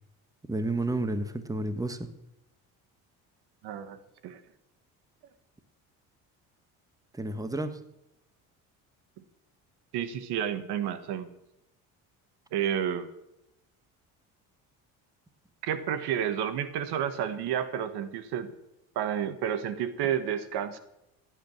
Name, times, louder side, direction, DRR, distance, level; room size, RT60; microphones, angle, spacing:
voice 1, 0.5-2.1 7.1-7.8, right 2 dB, 10° right, 10 dB, 1.4 m, -31 dB
voice 2, 3.6-4.4 9.9-11.3 12.5-13.1 15.6-18.5 18.9-20.8, right 9 dB, 70° right, 11 dB, 1.5 m, -30 dB
16.0 x 9.0 x 7.2 m, 0.86 s
supercardioid pair, 90°, 40 cm